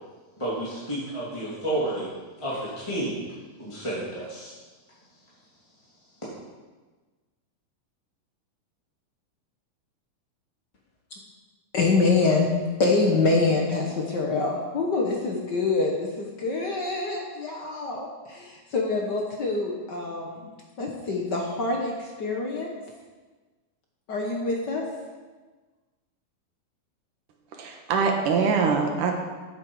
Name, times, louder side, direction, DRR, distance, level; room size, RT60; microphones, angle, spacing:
voice 1, 0.4-2.1 2.4-3.3 3.6-4.5, right 1 dB, 10° left, -8 dB, 2.3 m, -30 dB
voice 2, 11.7-12.5 12.8-20.5 20.8-22.7 24.1-24.8, left 3 dB, 70° left, 0 dB, 1.0 m, -25 dB
voice 3, 27.5-29.1, right 5 dB, 70° right, 2 dB, 2.8 m, -23 dB
13.5 x 9.1 x 4.8 m, 1.3 s
omnidirectional pair, 4.0 m